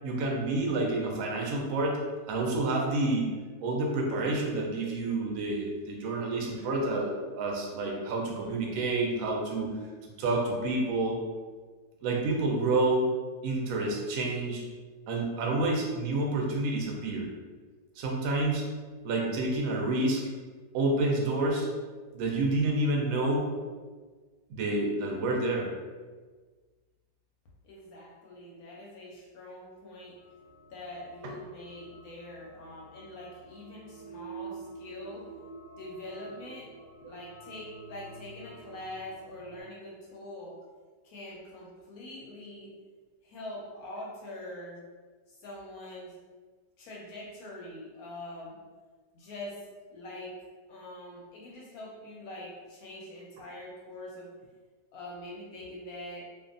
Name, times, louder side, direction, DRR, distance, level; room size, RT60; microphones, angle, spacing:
voice 1, 0.0-2.0 2.3-3.3 3.6-9.7 10.0-11.2 12.0-13.1 13.4-14.6 15.1-17.3 18.0-18.6 19.0-20.2 20.7-21.7 22.1-23.5 24.5-25.7, right 2 dB, 70° right, -1 dB, 0.8 m, -29 dB
voice 2, 27.6-30.1 30.7-35.3 35.7-36.7 37.0-40.6 41.0-42.7 43.2-44.8 45.3-46.1 46.8-48.6 49.1-49.6 49.9-50.3 50.7-54.3 54.9-56.3, left 1 dB, 70° left, -4 dB, 1.0 m, -44 dB
sound 1, 30.1-39.6, right 4 dB, 90° right, 1.2 m, -48 dB
2.6 x 2.3 x 2.5 m, 1.4 s
omnidirectional pair, 1.8 m